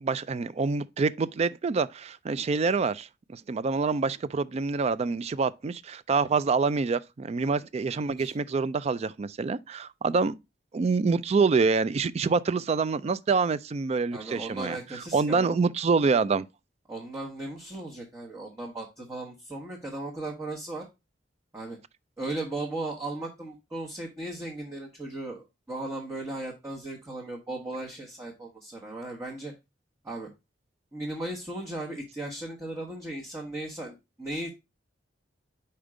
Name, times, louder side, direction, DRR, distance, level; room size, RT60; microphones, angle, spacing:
voice 1, 0.0-10.3 10.7-14.8 15.1-16.5, right 4 dB, 35° right, 0.3 m, -26 dB
voice 2, 14.1-15.6 16.9-20.8 21.5-21.8 22.2-29.5 30.0-30.3 30.9-34.6, right 2 dB, 15° right, 1.1 m, -36 dB
5.2 x 4.4 x 4.8 m
head